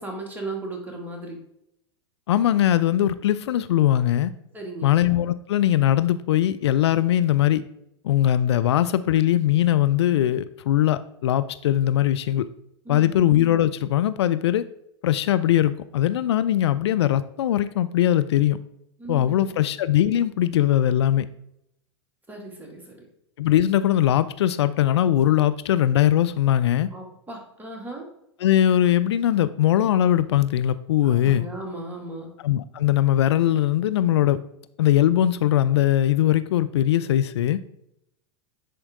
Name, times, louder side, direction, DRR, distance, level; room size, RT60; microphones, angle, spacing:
voice 1, 0.0-1.4 4.5-5.0 12.8-13.2 19.0-19.6 22.3-23.1 26.9-28.1 31.0-32.3, right 2 dB, 10° right, 0 dB, 2.4 m, -36 dB
voice 2, 2.3-4.3 4.8-7.6 8.0-12.5 12.9-14.7 15.0-18.6 19.1-21.3 23.4-26.9 28.4-31.5 32.4-34.4 34.8-37.6, left 12 dB, 70° left, 14 dB, 0.4 m, -20 dB
10.0 x 4.4 x 3.7 m, 0.79 s
hypercardioid pair, 95°, 14 cm